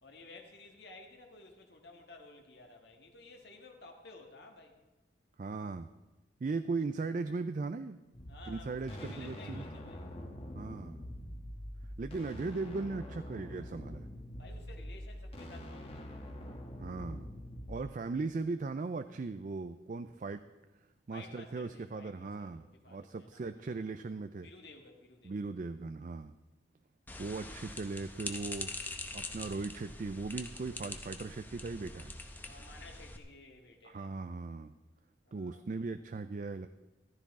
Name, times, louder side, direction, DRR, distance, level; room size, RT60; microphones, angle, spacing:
voice 1, 0.0-4.8 8.3-10.0 14.4-16.3 21.1-23.8 24.4-25.5 32.5-34.1 35.3-35.8, left 2 dB, 60° left, 3 dB, 1.5 m, -54 dB
voice 2, 5.4-5.9 6.4-8.0 8.5-9.6 10.6-11.0 12.0-14.1 16.8-17.3 17.7-20.4 21.1-24.5 25.2-26.3 27.2-28.7 29.1-32.2 33.8-34.7 35.3-36.7, right 3 dB, 45° right, 10 dB, 0.4 m, -38 dB
sound 1, 8.1-17.9, equal, 30° left, 1.2 m, -45 dB
sound 2, 27.1-33.2, left 2 dB, 10° left, 0.8 m, -44 dB
14.0 x 13.5 x 3.7 m, 1.1 s
head